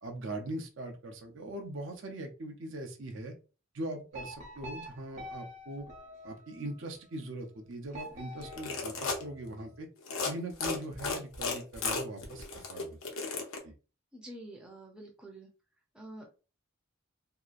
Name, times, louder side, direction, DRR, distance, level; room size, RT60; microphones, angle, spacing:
voice 1, 0.0-3.3 3.7-5.9 6.2-9.9 10.2-13.0 13.6-13.7, right 1 dB, 65° right, 3 dB, 0.6 m, -41 dB
sound 1, 4.1-6.8 7.9-9.7, equal, 30° right, 0.8 m, -47 dB
sound 2, 8.4-9.2 10.0-10.3 10.6-13.6, left 4 dB, 80° left, 0.7 m, -34 dB
voice 2, 14.1-15.5 15.9-16.3, right 1 dB, 5° right, -1 dB, 0.5 m, -47 dB
2.8 x 2.3 x 2.4 m, 0.34 s
head